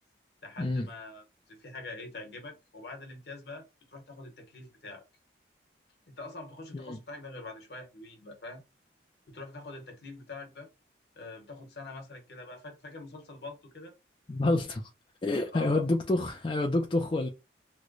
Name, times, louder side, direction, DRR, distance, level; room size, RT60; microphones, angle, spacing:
voice 1, 0.4-5.0 6.1-8.6 9.3-10.7 11.2-13.9 15.5-15.8, left 2 dB, 60° left, 1.1 m, -44 dB
voice 2, 14.3-14.8 15.2-17.3, left 2 dB, 25° left, 0.4 m, -28 dB
3.0 x 2.1 x 3.8 m
head